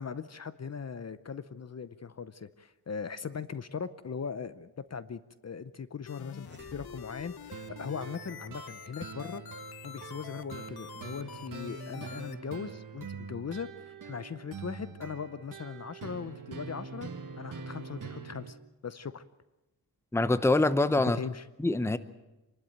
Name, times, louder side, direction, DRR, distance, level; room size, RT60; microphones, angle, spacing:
voice 1, 0.0-9.4 9.8-17.1 17.4-18.6 18.8-19.2 21.0-21.4, left 6 dB, 45° left, 0.7 m, -39 dB
sound 1, 6.1-12.3, left 9 dB, 80° left, 1.0 m, -47 dB
sound 2, 6.3-8.4, right 2 dB, 30° right, 2.1 m, -55 dB
sound 3, 7.5-18.5, right 5 dB, 55° right, 1.7 m, -44 dB
voice 2, 20.1-21.2 21.6-22.0, left 2 dB, 5° left, 0.8 m, -24 dB
26.5 x 12.0 x 8.9 m
wide cardioid pair, 110°, 37 cm